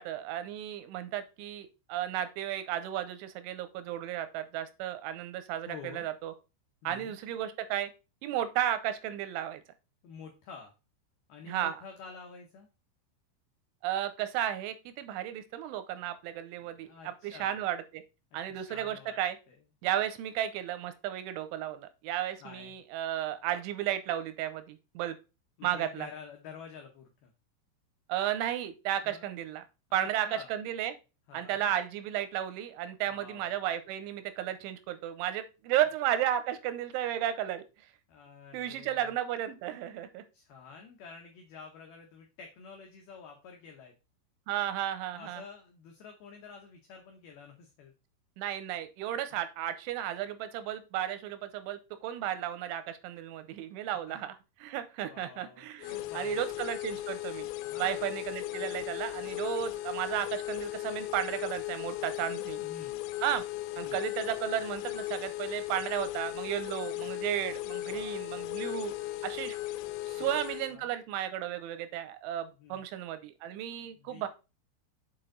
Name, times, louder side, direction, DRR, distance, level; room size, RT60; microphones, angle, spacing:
voice 1, 0.0-6.3 6.8-7.9 8.2-9.6 11.5-11.8 13.8-18.0 18.3-19.4 19.8-25.2 25.6-26.1 28.1-29.6 29.9-30.9 31.3-37.6 38.5-40.2 44.5-45.4 48.4-54.3 54.6-57.5 57.8-62.6 63.2-63.4 63.8-68.9 69.2-69.6 70.1-74.3, right 11 dB, 85° right, 11 dB, 3.0 m, -34 dB
voice 2, 5.7-6.1 6.8-7.2 10.0-10.7 11.3-12.7 16.6-17.6 18.5-19.2 19.5-19.6 22.4-22.8 25.6-27.3 29.0-29.3 29.9-30.5 31.3-31.7 33.1-33.5 38.1-39.1 40.3-44.0 45.1-47.9 54.1-54.2 55.1-56.5 57.7-58.1 62.3-63.0 63.8-64.0 67.7-68.4 70.1-70.3 70.7-70.9 72.6-72.8 73.5-74.3, left 5 dB, 75° left, 2 dB, 2.4 m, -49 dB
sound 1, 55.8-70.7, left 16 dB, 90° left, 3.2 m, -37 dB
7.7 x 4.7 x 3.8 m, 0.29 s
omnidirectional pair, 5.7 m